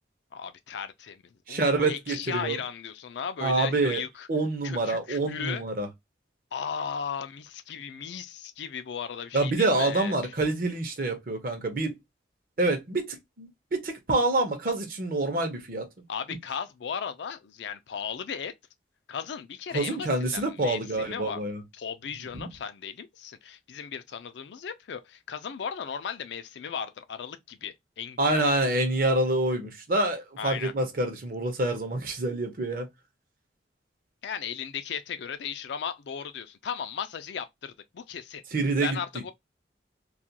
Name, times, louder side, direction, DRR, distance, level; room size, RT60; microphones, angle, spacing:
voice 1, 0.3-4.3 4.6-5.6 6.5-10.2 16.1-18.5 19.1-21.4 21.7-28.4 30.4-30.7 34.2-38.4 38.8-39.3, left 7 dB, 75° left, 0.4 m, -36 dB
voice 2, 1.5-2.6 3.4-4.0 4.3-5.9 9.3-12.0 12.6-15.9 19.7-21.6 22.3-22.5 28.2-32.9 38.5-39.0, right 2 dB, 50° right, 0.7 m, -27 dB
2.4 x 2.2 x 2.7 m
head